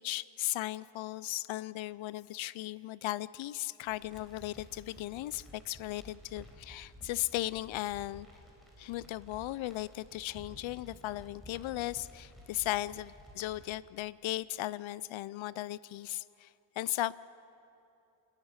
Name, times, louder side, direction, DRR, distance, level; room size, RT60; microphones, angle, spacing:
voice 1, 0.0-8.3 8.8-16.5 16.8-17.1, left 16 dB, 75° left, 19 dB, 0.5 m, -37 dB
sound 1, 3.8-13.7, equal, ahead, 4.1 m, -54 dB
28.0 x 10.5 x 9.6 m, 3.0 s
wide cardioid pair, 155°, 47 cm